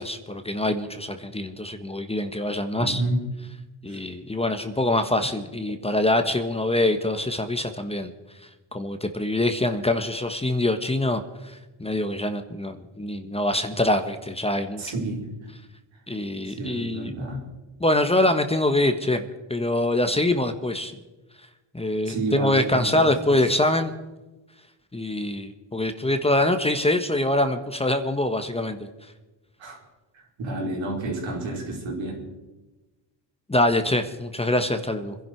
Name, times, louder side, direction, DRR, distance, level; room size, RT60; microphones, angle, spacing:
voice 1, 0.0-3.0 3.8-8.1 8.7-14.8 16.1-17.1 17.8-20.9 21.7-23.9 24.9-28.9 33.5-35.2, left 1 dB, 15° left, 8 dB, 1.3 m, -24 dB
voice 2, 2.8-3.2 3.9-4.0 14.8-15.3 15.9-16.0 16.4-17.5 22.0-23.5 29.6-29.8 30.1-32.3, right 2 dB, 75° right, -1 dB, 4.8 m, -30 dB
25.5 x 11.0 x 4.6 m, 1.1 s
cardioid pair, 95°, 45 cm